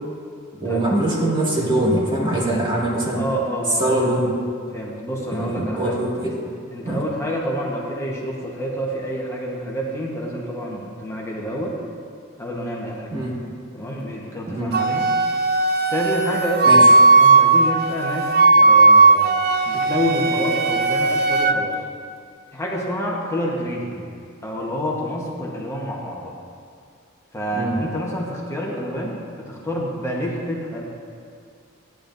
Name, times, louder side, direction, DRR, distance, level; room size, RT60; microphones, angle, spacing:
voice 1, 0.5-3.2 3.8-4.4 5.3-6.4 6.8-7.0 13.1-13.4 14.5-14.8 16.6-16.9 27.5-27.8, right 1 dB, 25° right, -5 dB, 2.0 m, -22 dB
voice 2, 3.2-4.1 4.7-6.0 6.7-11.8 12.4-13.1 13.7-15.1 15.9-19.4 19.7-21.8 22.5-24.1 24.4-26.3 27.3-29.2 29.5-30.8, equal, 15° left, -3 dB, 1.2 m, -28 dB
Wind instrument woodwind instrument, 14.7-21.6, right 3 dB, 45° right, 0.4 m, -16 dB
13.5 x 10.5 x 2.6 m, 2.2 s
head